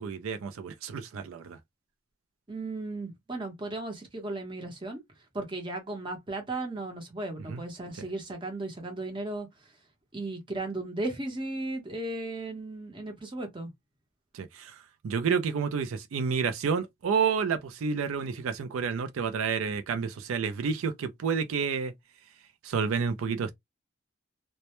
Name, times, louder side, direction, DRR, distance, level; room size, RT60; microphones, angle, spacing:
voice 1, 0.0-1.6 7.5-7.6 14.3-14.8 15.0-21.9 22.6-23.5, right 6 dB, 80° right, 0.4 m, -30 dB
voice 2, 2.5-5.0 5.3-9.5 10.1-13.7, right 2 dB, 25° right, 0.7 m, -35 dB
2.1 x 2.1 x 2.8 m
head